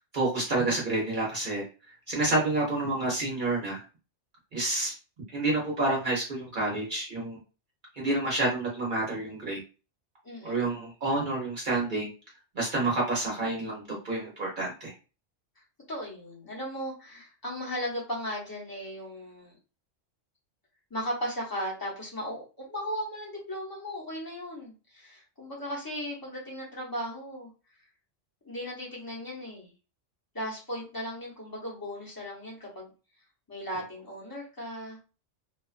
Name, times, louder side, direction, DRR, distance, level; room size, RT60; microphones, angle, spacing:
voice 1, 0.1-1.7 2.1-3.8 4.5-4.9 5.3-7.4 7.9-9.6 10.4-12.1 12.5-14.9, right 2 dB, 50° right, -3 dB, 0.8 m, -29 dB
voice 2, 10.2-10.8 15.9-19.6 20.9-27.5 28.4-29.7 30.3-32.9 33.5-35.0, equal, 20° left, -4 dB, 0.8 m, -37 dB
2.4 x 2.3 x 2.4 m, 0.34 s
omnidirectional pair, 1.2 m